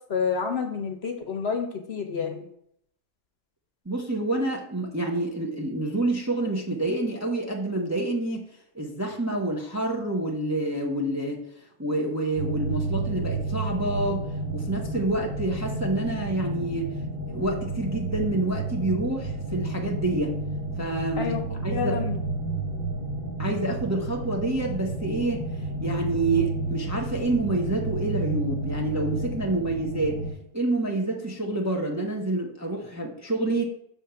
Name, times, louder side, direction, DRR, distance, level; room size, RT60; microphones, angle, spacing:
voice 1, 0.1-2.4 21.2-22.2, left 6 dB, 55° left, 5 dB, 1.0 m, -29 dB
voice 2, 3.9-8.5 8.7-11.4 11.8-14.3 14.5-16.9 17.3-20.4 20.8-21.3 21.6-22.0 23.4-25.5 25.8-30.2 30.5-33.6, right 2 dB, 15° right, 0 dB, 0.7 m, -28 dB
sound 1, 12.3-30.3, right 2 dB, 40° right, 2.0 m, -31 dB
6.3 x 3.7 x 5.6 m, 0.72 s
omnidirectional pair, 1.4 m